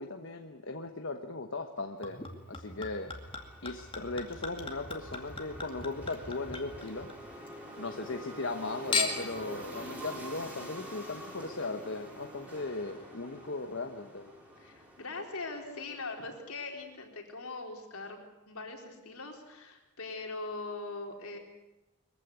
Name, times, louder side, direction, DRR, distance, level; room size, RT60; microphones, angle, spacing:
voice 1, 0.0-2.2 2.5-3.1 3.6-7.1 7.8-14.3, left 3 dB, 55° left, 5 dB, 1.2 m, -37 dB
Chink clink / Liquid, 2.0-7.5 7.9-8.6 8.9-9.4 10.2-10.3, left 4 dB, 25° left, 2.2 m, -38 dB
sound 1, 2.2-16.5, equal, 5° right, 4.9 m, -47 dB
voice 2, 14.6-21.4, left 3 dB, 75° left, 2 dB, 4.1 m, -41 dB
22.5 x 15.0 x 9.7 m, 1.1 s
head